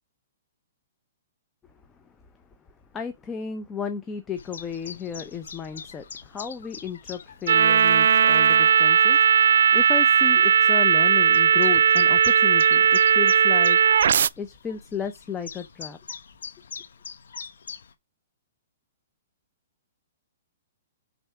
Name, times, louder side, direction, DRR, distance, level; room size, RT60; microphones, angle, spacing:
voice 1, 2.9-13.8 14.4-16.0, left 6 dB, 15° left, 0.8 m, -34 dB
Chirp tweet, 4.4-17.9, left 6 dB, 80° left, 1.1 m, -43 dB
sound 1, 7.5-14.3, right 7 dB, 75° right, 0.4 m, -18 dB
5.7 x 4.1 x 6.0 m
hypercardioid pair, 150°, 0 cm